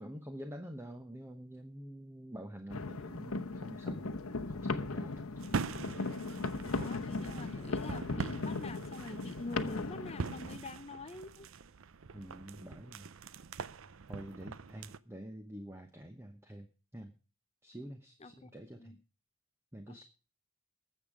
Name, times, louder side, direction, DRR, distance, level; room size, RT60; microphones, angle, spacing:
voice 1, 0.0-4.2 4.5-5.3 12.1-13.1 14.1-17.1 17.6-19.0 19.7-20.1, right 1 dB, 10° right, 0.9 m, -47 dB
sound 1, 2.7-10.6, left 3 dB, 75° left, 0.9 m, -38 dB
sound 2, 5.4-15.0, right 4 dB, 65° right, 0.6 m, -43 dB
voice 2, 6.7-11.5 18.2-18.5 18.8-19.0 19.9-20.1, left 2 dB, 30° left, 0.6 m, -45 dB
19.5 x 7.4 x 5.0 m
head